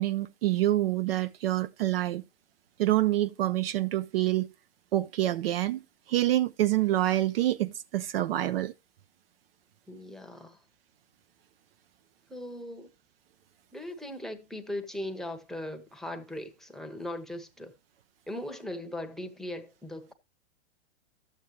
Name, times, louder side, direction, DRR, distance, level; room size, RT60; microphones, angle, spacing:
voice 1, 0.0-2.2 2.8-4.5 4.9-5.8 6.1-8.7, right 15 dB, 55° right, 0.6 m, -26 dB
voice 2, 9.9-10.6 12.3-12.9 13.7-17.7 18.3-20.1, left 1 dB, ahead, 0.9 m, -39 dB
12.0 x 8.2 x 3.0 m
hypercardioid pair, 125°, 35 cm